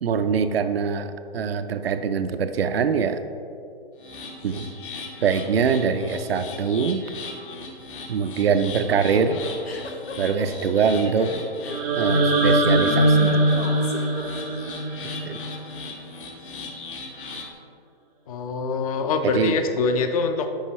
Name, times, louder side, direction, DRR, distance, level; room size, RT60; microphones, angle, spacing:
voice 1, 0.0-3.2 4.4-4.7 5.2-7.0 8.1-9.4 10.2-11.3 12.0-13.5 15.2-15.4 19.2-19.6, right 6 dB, 80° right, 10 dB, 0.6 m, -23 dB
sound 1, 4.0-17.5, left 4 dB, 60° left, 1.4 m, -39 dB
sound 2, 8.4-14.7, left 4 dB, 85° left, 1.1 m, -36 dB
sound 3, 11.7-15.7, right 1 dB, 5° right, 0.4 m, -21 dB
voice 2, 18.3-20.5, left 4 dB, 40° left, 7 dB, 0.6 m, -24 dB
10.0 x 5.4 x 3.1 m, 2.5 s
hypercardioid pair, 145°, 30 cm